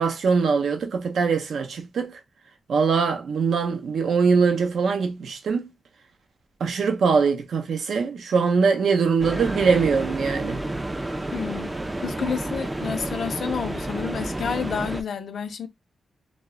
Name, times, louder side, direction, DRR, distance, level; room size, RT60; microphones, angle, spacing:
voice 1, 0.0-2.2 2.7-5.7 6.6-10.6, right 5 dB, 70° right, 0.5 m, -22 dB
sound 1, 9.2-15.0, right 1 dB, 15° right, 0.3 m, -30 dB
voice 2, 11.3-11.7 12.0-15.7, left 7 dB, 65° left, 0.4 m, -30 dB
2.0 x 2.0 x 3.5 m
cardioid pair, 110°, 0 cm